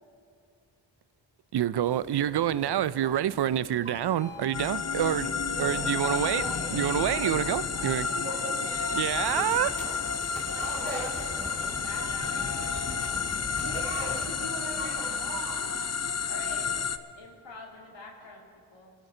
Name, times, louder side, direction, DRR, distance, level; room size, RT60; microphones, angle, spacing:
voice 1, 1.5-5.3 5.6-6.4 6.7-8.1 8.9-9.7, right 11 dB, 55° right, 17 dB, 0.5 m, -27 dB
sound 1, 1.8-15.4, right 1 dB, 15° right, 2.4 m, -44 dB
sound 2, 4.5-17.0, left 6 dB, 30° left, 0.7 m, -31 dB
voice 2, 5.6-7.3 7.7-9.5 10.6-11.1 13.4-15.8 18.2-18.3, right 2 dB, 75° right, -4 dB, 2.9 m, -41 dB
sound 3, 8.9-14.3, left 1 dB, 5° left, 2.4 m, -44 dB
voice 3, 9.5-10.1 10.4-11.2 11.6-14.2 16.3-16.7 17.2-18.4 18.7-18.9, left 2 dB, 65° left, -2 dB, 2.4 m, -47 dB
23.0 x 12.5 x 3.9 m, 2.4 s
supercardioid pair, 40°, 49 cm